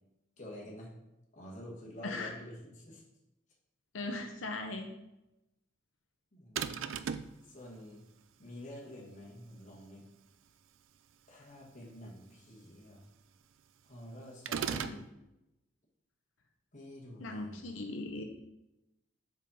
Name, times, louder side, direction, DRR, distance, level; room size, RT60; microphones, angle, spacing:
voice 1, 0.4-0.9 1.3-3.0 6.3-6.7 7.5-8.0 8.4-10.1 11.3-13.0 13.8-15.0 16.7-17.6, equal, 40° left, -3 dB, 1.5 m, -48 dB
voice 2, 2.0-2.3 3.9-4.9 14.7-15.0 17.2-18.2, left 2 dB, 85° left, 3 dB, 0.7 m, -39 dB
sound 1, 6.6-7.4 14.5-15.0, right 7 dB, 80° right, 0.4 m, -35 dB
5.3 x 5.2 x 4.2 m, 0.92 s
head